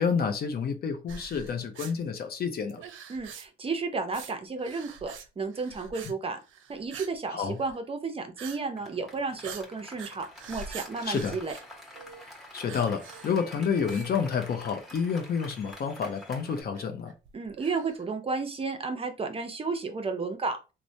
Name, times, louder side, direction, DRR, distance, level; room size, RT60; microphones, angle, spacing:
voice 1, 0.0-2.8 7.3-7.6 11.0-11.4 12.5-17.1, left 6 dB, 50° left, 0.6 m, -29 dB
sound 1, 1.1-1.9 2.7-3.7 4.1-4.3 4.6-5.3 5.5-6.1 6.4-7.2 7.5-7.8 8.4-8.6 8.9-9.0 9.4-12.3 12.7-13.5 13.9-14.6 15.0-15.1 15.7-15.8 16.7-18.0, right 6 dB, 80° right, 0.5 m, -45 dB
voice 2, 3.1-6.4 6.7-11.6 17.3-20.7, right 4 dB, 30° right, 0.5 m, -33 dB
Applause, 8.8-16.6, left 1 dB, ahead, 1.0 m, -47 dB
3.1 x 2.1 x 2.6 m
cardioid pair, 90°, 20 cm